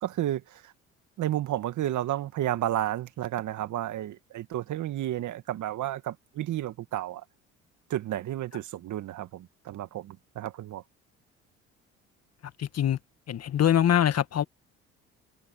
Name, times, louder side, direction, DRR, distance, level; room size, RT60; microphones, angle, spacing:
voice 1, 0.0-0.7 1.2-7.2 7.9-10.8, right 12 dB, 60° right, 2.0 m, -32 dB
voice 2, 12.6-13.0 13.3-14.4, left 10 dB, 50° left, 1.6 m, -23 dB
supercardioid pair, 65°, 33 cm